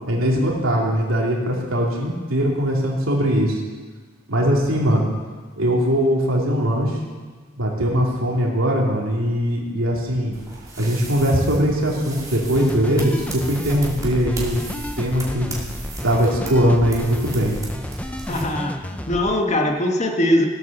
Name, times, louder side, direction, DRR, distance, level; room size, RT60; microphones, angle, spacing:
voice 1, 0.1-3.6 4.3-5.1 5.6-7.0 7.6-10.3 10.8-14.6 15.0-15.5 16.0-17.6, equal, 90° right, -2 dB, 2.9 m, -20 dB
sound 1, 10.3-18.4, right 1 dB, 15° right, 2.4 m, -35 dB
sound 2, 12.5-19.4, left 1 dB, 5° left, 0.5 m, -33 dB
voice 2, 18.3-20.5, left 1 dB, 35° left, 3 dB, 1.3 m, -21 dB
16.5 x 8.3 x 6.7 m, 1.5 s
head